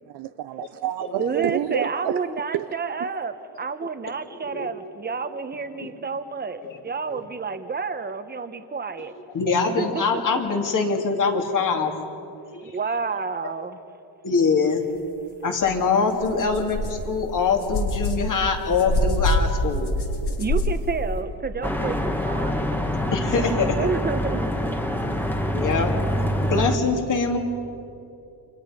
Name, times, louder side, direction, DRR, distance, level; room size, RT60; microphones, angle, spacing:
voice 1, 0.1-2.2 2.5-2.7 3.0-3.1, right 13 dB, 75° right, 10 dB, 0.7 m, -28 dB
voice 2, 1.2-9.1 9.8-10.4 12.6-13.8 20.4-22.8 23.7-24.5, right 5 dB, 25° right, 9 dB, 1.2 m, -30 dB
voice 3, 9.3-11.9 12.5-12.8 14.2-14.8 15.4-19.9 22.6-22.7 23.1-23.9 25.0-25.1 25.5-25.9 26.4-27.4, left 4 dB, 45° left, 3 dB, 2.9 m, -23 dB
sound 1, 15.6-15.7 16.2-21.2, left 1 dB, 65° left, 3.5 m, -26 dB
sound 2, 21.6-26.8, equal, 5° left, 1.5 m, -25 dB
30.0 x 26.0 x 5.2 m, 2.7 s
cardioid pair, 130°, 42 cm